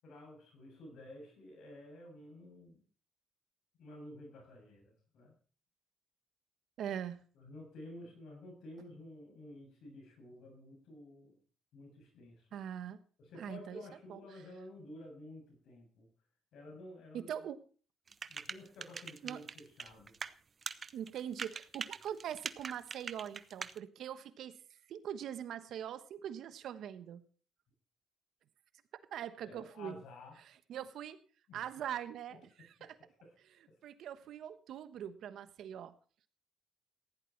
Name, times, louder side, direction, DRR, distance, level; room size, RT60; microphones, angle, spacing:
voice 1, 0.0-2.8 3.8-5.3 7.3-11.4 11.7-12.6 13.2-16.1 16.5-17.3 18.3-20.1 29.4-30.4 31.5-31.7 32.3-32.4 32.8-32.9 33.2-33.3 33.7-33.8, left 1 dB, 75° left, 2 dB, 7.5 m, -52 dB
voice 2, 6.8-7.2 12.5-13.0 13.4-13.8 14.1-14.2 17.1-17.6 19.2-19.4 20.9-24.6 24.9-27.2 29.1-30.0 30.7-31.2 31.5-32.9 33.8-35.9, right 9 dB, 75° right, 12 dB, 1.1 m, -42 dB
sound 1, 18.1-20.3 20.6-23.8, right 5 dB, 40° right, 0.8 m, -42 dB
15.5 x 10.5 x 4.5 m, 0.41 s
cardioid pair, 90°, 0 cm